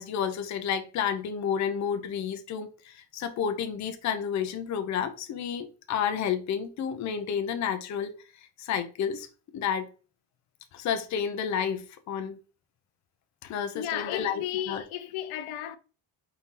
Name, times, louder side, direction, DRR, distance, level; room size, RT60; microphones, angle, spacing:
voice 1, 0.0-8.1 8.6-9.3 9.5-9.9 10.7-12.4 13.5-14.4 14.7-14.8, left 8 dB, 35° left, 0.5 m, -30 dB
voice 2, 13.4-15.8, left 11 dB, 80° left, 0.6 m, -34 dB
4.4 x 2.6 x 3.7 m
cardioid pair, 165°, 49 cm